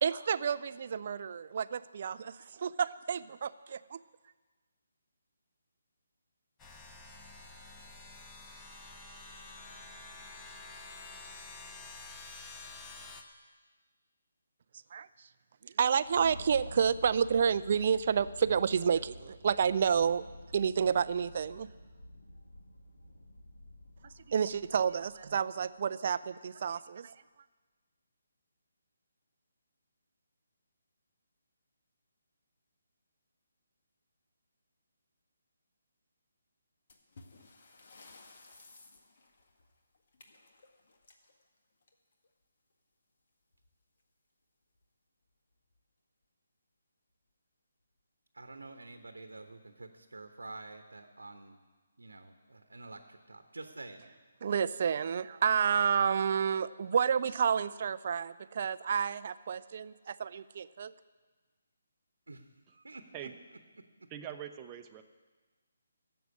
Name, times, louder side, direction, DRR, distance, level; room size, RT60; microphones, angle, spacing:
voice 1, 0.0-4.0 14.9-15.1 15.6-20.2 20.5-21.7 24.3-27.2 54.4-60.9, right 7 dB, 45° right, 15 dB, 0.5 m, -30 dB
sound 1, 6.6-13.2, left 3 dB, 15° left, 1.2 m, -49 dB
sound 2, 16.0-25.6, left 1 dB, 90° left, 1.7 m, -50 dB
sound 3, 36.9-42.3 43.5-43.7 44.0-44.1 44.7-44.8 45.5-45.8, left 3 dB, 50° left, 1.7 m, -58 dB
voice 2, 48.3-51.6 52.0-54.1 62.3-63.3 63.8-64.1, right 2 dB, 75° right, 7 dB, 1.0 m, -48 dB
voice 3, 64.1-65.0, right 10 dB, 20° right, 7 dB, 0.8 m, -43 dB
13.0 x 7.8 x 9.8 m, 1.3 s
figure-of-eight pair, 145°, 0 cm